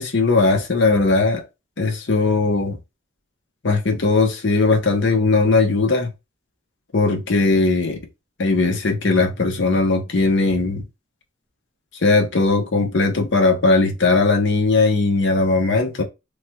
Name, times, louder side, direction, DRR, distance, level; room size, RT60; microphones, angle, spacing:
voice 1, 0.0-1.4 1.8-2.8 3.6-6.1 6.9-8.0 8.4-10.8 12.0-16.0, left 3 dB, 65° left, 0.7 m, -18 dB
3.1 x 2.2 x 2.9 m
head